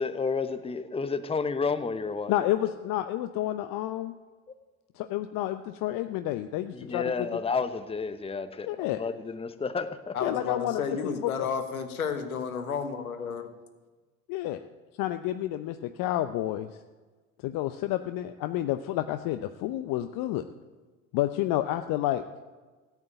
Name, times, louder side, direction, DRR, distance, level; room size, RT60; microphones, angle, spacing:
voice 1, 0.0-2.3 6.7-10.2, left 4 dB, 15° left, 1.0 m, -31 dB
voice 2, 2.3-4.1 5.0-7.1 8.7-9.0 10.2-10.8 14.3-14.6 15.0-16.7 17.4-20.4 21.1-22.2, left 14 dB, 50° left, 0.8 m, -29 dB
voice 3, 10.1-13.5, left 6 dB, 85° left, 1.5 m, -32 dB
14.5 x 8.4 x 9.0 m
hypercardioid pair, 65°, 42 cm